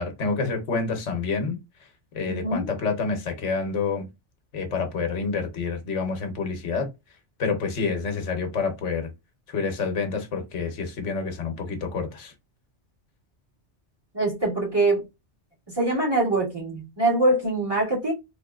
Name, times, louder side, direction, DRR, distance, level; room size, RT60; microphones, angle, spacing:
voice 1, 0.0-1.6 2.1-4.1 4.5-6.9 7.4-9.1 9.5-12.3, left 4 dB, 90° left, 1.2 m, -28 dB
voice 2, 2.3-2.7 14.1-15.0 15.8-18.1, right 2 dB, 20° right, 2.0 m, -23 dB
3.6 x 3.0 x 2.3 m
omnidirectional pair, 1.2 m